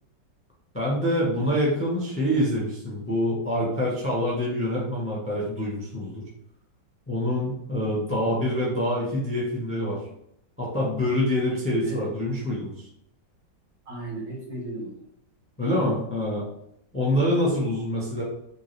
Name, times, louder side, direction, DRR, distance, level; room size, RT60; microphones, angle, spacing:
voice 1, 0.7-6.2 7.1-10.0 10.6-12.7 15.6-16.4 16.9-18.2, equal, 10° left, -4 dB, 0.7 m, -26 dB
voice 2, 7.8-8.2 11.8-12.1 13.9-15.0, right 2 dB, 65° right, -6 dB, 2.2 m, -37 dB
4.6 x 2.7 x 3.2 m, 0.75 s
omnidirectional pair, 1.9 m